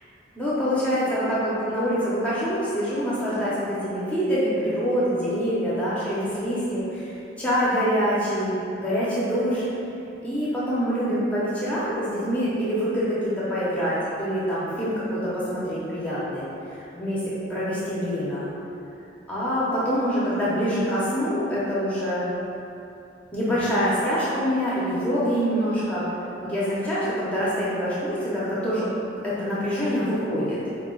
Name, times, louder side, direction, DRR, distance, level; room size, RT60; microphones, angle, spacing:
voice 1, 0.3-7.1 7.4-9.6 10.2-16.5 16.9-17.2 17.5-18.5 19.3-22.3 23.3-26.1 26.4-30.6, equal, 5° left, -10 dB, 0.7 m, -25 dB
4.0 x 2.3 x 3.7 m, 2.7 s
head